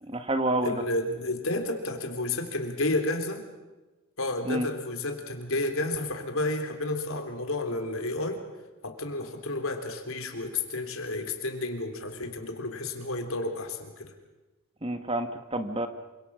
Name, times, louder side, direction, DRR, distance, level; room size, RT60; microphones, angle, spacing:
voice 1, 0.0-0.8 4.4-4.7 14.8-15.9, right 1 dB, 25° right, 8 dB, 1.4 m, -28 dB
voice 2, 0.6-3.4 4.2-8.4 8.8-14.1, left 2 dB, 75° left, 5 dB, 3.7 m, -31 dB
27.5 x 25.5 x 6.3 m, 1.1 s
head